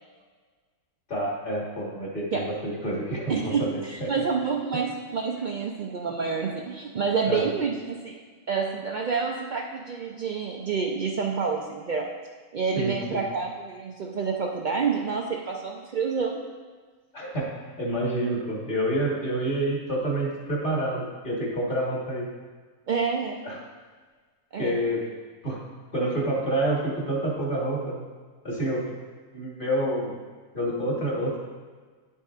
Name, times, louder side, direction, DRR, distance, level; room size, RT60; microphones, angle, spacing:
voice 1, 1.1-4.2 7.3-7.4 12.7-13.2 17.1-17.5 17.8-22.3 23.4-23.6 24.6-25.0 25.4-25.6 25.9-28.0 28.4-28.8 29.3-30.1 30.5-31.4, right 1 dB, 40° left, -3 dB, 1.6 m, -28 dB
voice 2, 3.3-8.1 8.5-12.1 12.5-16.4 22.9-23.4 24.5-24.8, right 5 dB, 90° right, 0 dB, 0.4 m, -28 dB
9.4 x 7.1 x 2.4 m, 1.5 s
omnidirectional pair, 1.5 m